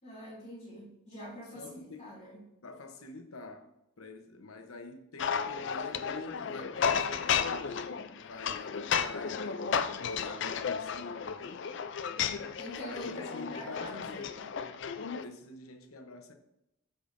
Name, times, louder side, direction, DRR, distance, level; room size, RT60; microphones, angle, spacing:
voice 1, 0.0-2.5 12.3-14.5, equal, 35° left, 3.0 m, -45 dB
voice 2, 1.5-2.1 2.6-3.7 4.0-11.6 12.9-14.3 15.2-16.3, left 3 dB, 90° left, 0.9 m, -47 dB
sound 1, 5.2-15.2, left 7 dB, 55° left, 0.4 m, -33 dB
13.5 x 5.1 x 2.6 m
head